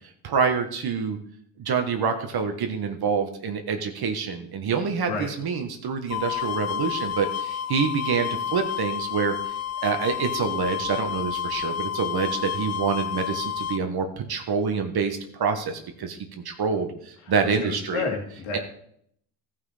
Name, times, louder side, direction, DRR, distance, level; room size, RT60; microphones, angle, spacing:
voice 1, 0.2-1.2 1.6-9.4 9.8-16.2 16.4-18.0 18.5-18.6, right 5 dB, 50° right, 6 dB, 1.5 m, -26 dB
sound 1, 6.1-13.8, left 10 dB, 35° left, 0.6 m, -30 dB
voice 2, 17.6-18.6, left 4 dB, 80° left, 2 dB, 2.7 m, -30 dB
14.0 x 5.9 x 5.0 m, 0.68 s
supercardioid pair, 80°, 48 cm